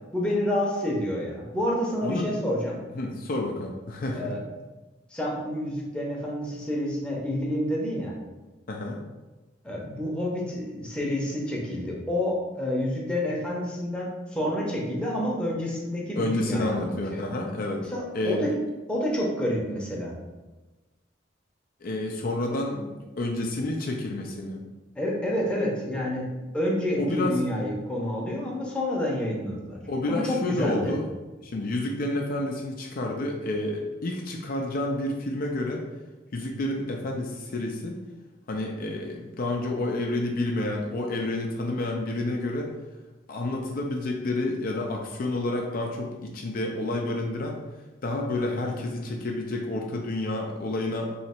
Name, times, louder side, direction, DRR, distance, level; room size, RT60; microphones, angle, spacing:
voice 1, 0.1-2.8 4.1-4.4 5.1-8.1 9.6-17.2 17.9-18.5 18.9-20.1 24.9-26.3 26.5-29.8 30.0-30.9, left 1 dB, 5° left, -4 dB, 0.7 m, -28 dB
voice 2, 2.0-2.3 2.9-4.4 8.7-9.0 16.2-17.9 18.1-18.4 21.8-24.6 27.0-27.3 29.9-31.0 31.4-35.9 36.3-38.0 38.5-42.7 43.3-47.6 48.0-51.1, left 2 dB, 50° left, 0 dB, 0.4 m, -29 dB
3.1 x 2.9 x 4.3 m, 1.2 s
head